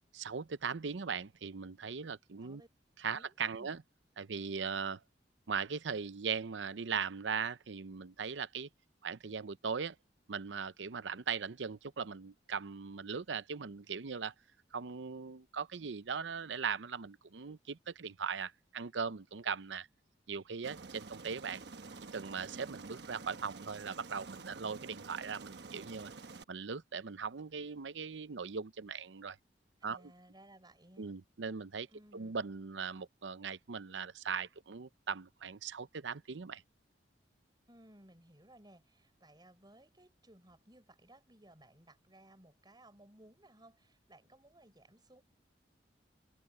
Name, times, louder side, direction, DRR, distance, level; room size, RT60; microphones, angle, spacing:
voice 1, 0.1-2.6 3.0-3.8 4.2-5.0 5.5-8.7 9.0-10.0 10.3-14.3 14.7-19.9 20.3-21.6 22.1-26.1 26.5-29.4 29.8-30.1 31.0-31.9 32.1-36.6, right 6 dB, 90° right, 0.7 m, -39 dB
voice 2, 3.1-3.7 29.8-31.2 31.9-32.4 37.7-45.2, right 1 dB, 25° right, 5.1 m, -60 dB
Aircraft, 20.6-26.4, right 3 dB, 70° right, 1.2 m, -49 dB
head